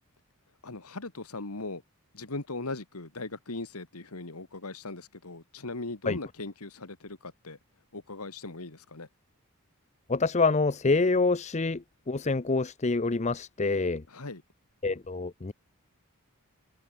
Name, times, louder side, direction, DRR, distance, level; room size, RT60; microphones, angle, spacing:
voice 1, 0.6-1.8 2.1-7.6 7.9-9.1 14.1-14.4, left 2 dB, 85° left, 2.2 m, -39 dB
voice 2, 10.1-14.0 14.8-15.5, left 3 dB, 30° left, 0.6 m, -26 dB
head